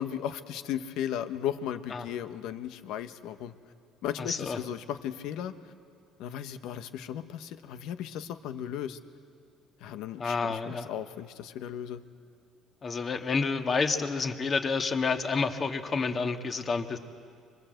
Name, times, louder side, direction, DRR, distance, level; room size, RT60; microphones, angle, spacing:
voice 1, 0.0-3.5 4.0-5.6 6.2-9.0 9.8-12.0, left 10 dB, 75° left, 10 dB, 1.2 m, -36 dB
voice 2, 4.2-4.6 10.2-10.9 12.8-17.0, left 4 dB, 40° left, 5 dB, 1.9 m, -29 dB
25.5 x 24.0 x 8.0 m, 2.3 s
supercardioid pair, 90°, 0 cm